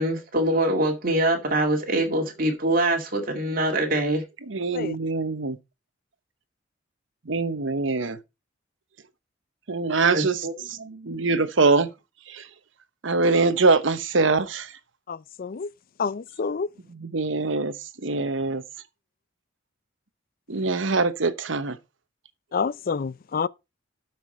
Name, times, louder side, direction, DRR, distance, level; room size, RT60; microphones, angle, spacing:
voice 1, 0.0-4.2 10.1-11.2, right 1 dB, 45° right, 2.2 m, -24 dB
voice 2, 4.5-5.6 7.3-8.2 9.7-10.4 11.1-11.9 12.3-12.4 13.0-14.7 16.9-17.7 18.0-18.6 20.5-21.8, right 3 dB, 70° right, 1.0 m, -23 dB
voice 3, 15.1-15.7 16.0-16.7 22.5-23.5, left 5 dB, 45° left, 0.4 m, -28 dB
12.0 x 6.0 x 4.3 m
head